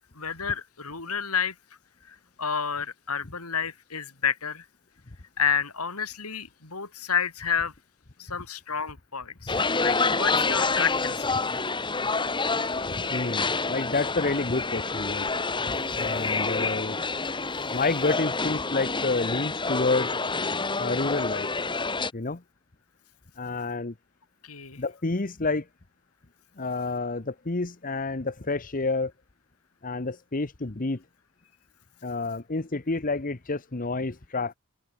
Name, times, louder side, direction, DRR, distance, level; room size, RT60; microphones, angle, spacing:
voice 1, 0.0-1.5 2.1-4.6 5.4-7.7 8.2-11.6 24.4-24.8, left 6 dB, 80° left, 5.0 m, -30 dB
sound 1, 9.5-22.1, left 3 dB, 20° left, 2.5 m, -28 dB
voice 2, 12.9-15.3 15.7-17.0 17.7-20.2 20.8-21.5 22.1-22.4 23.4-23.9 24.8-25.6 26.6-29.1 29.8-31.0 32.0-34.5, left 3 dB, 40° left, 1.1 m, -29 dB
head